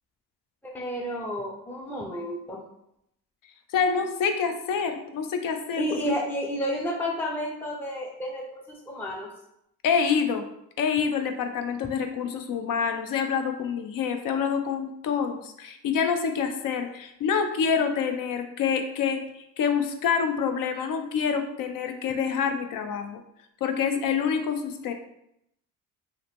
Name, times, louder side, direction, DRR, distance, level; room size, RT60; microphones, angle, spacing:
voice 1, 0.6-2.6 5.8-9.3, equal, 5° left, -2 dB, 0.5 m, -31 dB
voice 2, 3.7-5.8 9.8-10.4 10.8-23.2 23.6-24.9, left 6 dB, 60° left, 6 dB, 0.5 m, -27 dB
2.8 x 2.0 x 3.3 m, 0.79 s
supercardioid pair, 65°, 39 cm